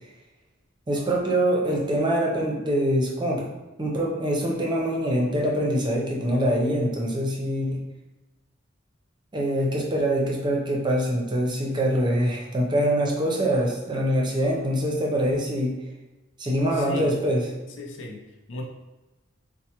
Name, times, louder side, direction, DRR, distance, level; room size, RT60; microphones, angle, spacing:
voice 1, 0.9-3.5 3.8-7.8 9.3-15.7 16.4-17.4, equal, 25° right, -2 dB, 0.6 m, -24 dB
voice 2, 16.7-17.2 17.7-18.6, left 1 dB, 65° left, 0 dB, 0.5 m, -36 dB
4.4 x 2.1 x 2.9 m, 1.1 s
head